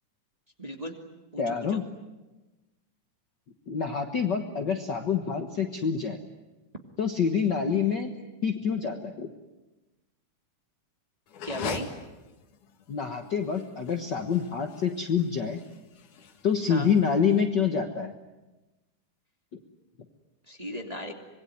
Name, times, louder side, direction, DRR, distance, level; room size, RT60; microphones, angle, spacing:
voice 1, 0.6-0.9 1.3-1.8 11.4-11.9 16.7-16.9 20.5-21.1, equal, 15° right, 2 dB, 2.2 m, -36 dB
voice 2, 1.4-1.8 3.7-6.2 7.0-8.1 8.4-9.3 12.9-15.6 16.4-18.1, left 6 dB, 50° left, 5 dB, 1.5 m, -27 dB
sound 1, 11.3-17.4, left 6 dB, 80° left, 3.4 m, -41 dB
25.5 x 22.0 x 9.7 m, 1.1 s
omnidirectional pair, 3.5 m